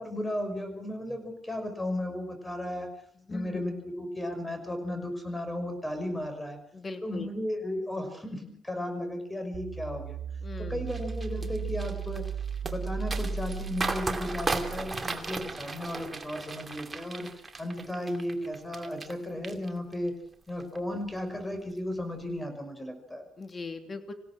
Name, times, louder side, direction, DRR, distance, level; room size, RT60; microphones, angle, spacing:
voice 1, 0.0-2.9 3.3-6.6 7.0-10.2 10.6-12.3 12.6-17.3 17.6-20.1 20.5-23.3, left 1 dB, 10° left, 6 dB, 6.2 m, -35 dB
voice 2, 3.3-3.6 6.7-7.3 10.4-10.9 23.4-24.1, left 3 dB, 35° left, 7 dB, 3.1 m, -39 dB
sound 1, 9.5-15.8, right 6 dB, 40° right, 6.6 m, -36 dB
sound 2, 10.9-19.1 19.4-20.1 20.5-20.8, right 3 dB, 25° right, 2.5 m, -36 dB
26.5 x 17.0 x 6.3 m, 0.69 s
cardioid pair, 90°, 0 cm